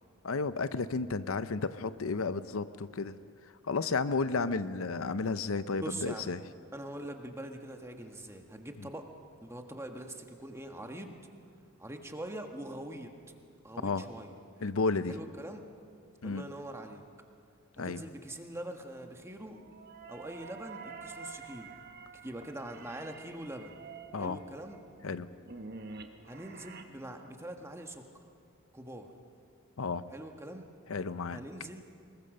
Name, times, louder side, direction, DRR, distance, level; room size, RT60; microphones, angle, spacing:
voice 1, 0.2-3.2 3.6-6.4 13.8-14.1 14.6-15.1 16.2-16.4 17.8-18.0 24.1-24.4 25.0-25.3 29.8-30.1 30.9-31.4, left 4 dB, 75° left, 13 dB, 0.7 m, -32 dB
voice 2, 5.8-6.3 6.7-9.1 9.4-11.2 11.8-13.1 13.6-14.7 15.1-15.6 16.2-17.0 17.8-19.6 20.1-21.7 22.2-23.7 24.2-24.8 26.2-28.0 28.7-29.1 30.1-30.7 31.3-31.8, right 1 dB, 15° right, 4 dB, 1.6 m, -43 dB
sound 1, 19.4-26.8, right 4 dB, 50° right, 1.3 m, -48 dB
24.5 x 21.5 x 6.6 m, 2.3 s
head